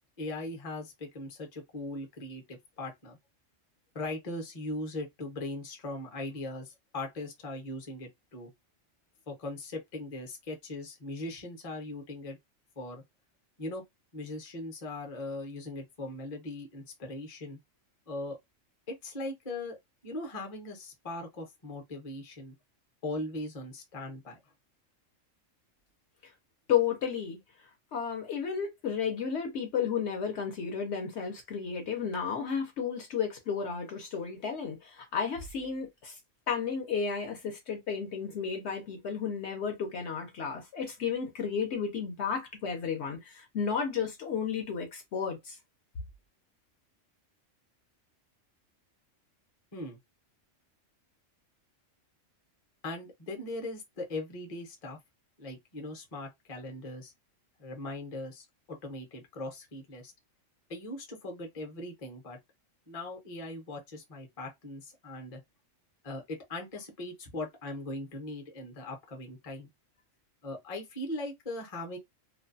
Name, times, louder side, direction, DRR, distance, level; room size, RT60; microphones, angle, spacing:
voice 1, 0.2-3.2 3.9-8.5 9.3-12.4 12.8-13.0 13.6-13.8 14.1-17.6 18.1-18.4 18.9-19.8 20.0-22.5 23.0-24.4 49.7-50.0 52.8-55.0 55.4-57.1 57.6-60.1 60.7-62.4 62.9-65.4 66.0-69.7 70.4-72.0, left 2 dB, 35° left, 0.7 m, -39 dB
voice 2, 26.7-27.4 27.9-36.1 36.5-45.6, left 7 dB, 65° left, 0.9 m, -32 dB
2.5 x 2.2 x 2.5 m
omnidirectional pair, 1.3 m